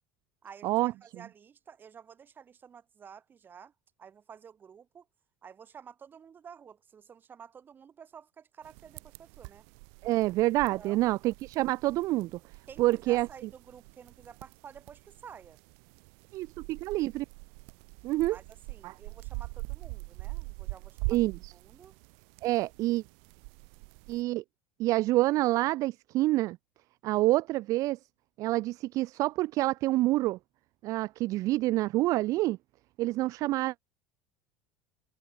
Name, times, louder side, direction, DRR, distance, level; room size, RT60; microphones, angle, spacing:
voice 1, 0.4-3.7 4.0-5.1 5.4-9.7 10.8-11.0 12.7-15.6 18.3-21.2 21.5-22.0, right 7 dB, 25° right, 3.7 m, -51 dB
sound 1, 8.6-24.2, right 40 dB or more, 75° right, 1.0 m, -44 dB
voice 2, 10.0-12.4 12.8-13.3 16.3-17.3 18.0-18.4 18.8-18.9 21.1-21.5 22.4-23.0 24.1-24.4 24.8-26.6 27.0-28.0 28.4-30.4 30.8-32.6 33.0-33.7, right 18 dB, 50° right, 0.4 m, -27 dB
cardioid pair, 140°, 8 cm